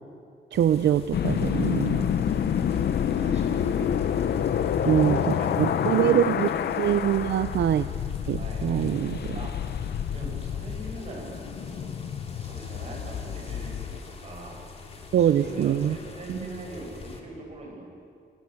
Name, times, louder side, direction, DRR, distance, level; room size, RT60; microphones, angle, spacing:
sound 1, 0.5-17.2, left 4 dB, 35° left, 3.0 m, -45 dB
voice 1, 0.5-2.0 4.9-5.2 5.6-6.5 6.8-7.9 8.3-9.4 15.1-16.0 16.3-16.4, right 10 dB, 70° right, 11 dB, 0.7 m, -23 dB
sound 2, 1.1-14.0, left 8 dB, 65° left, 0.9 m, -28 dB
voice 2, 3.2-3.9 4.8-6.8 8.3-9.7 10.1-12.0 12.3-17.8, right 2 dB, 35° right, -1 dB, 7.7 m, -41 dB
27.0 x 26.5 x 7.9 m, 2.3 s
wide cardioid pair, 165°, 18 cm